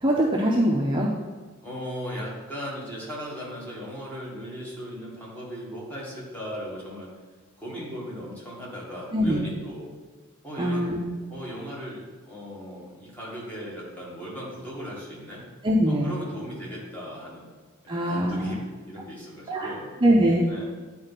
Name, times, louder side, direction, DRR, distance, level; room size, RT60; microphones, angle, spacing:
voice 1, 0.0-1.1 9.1-9.4 10.6-11.0 15.6-16.1 17.9-18.5 19.5-19.7 20.0-20.4, equal, 25° right, -2 dB, 0.6 m, -22 dB
voice 2, 1.6-7.1 7.6-10.0 10.4-10.9 11.3-15.4 15.9-17.5 17.8-19.9 20.5-20.6, equal, 10° left, -5 dB, 1.9 m, -37 dB
9.3 x 4.4 x 4.1 m, 1.4 s
head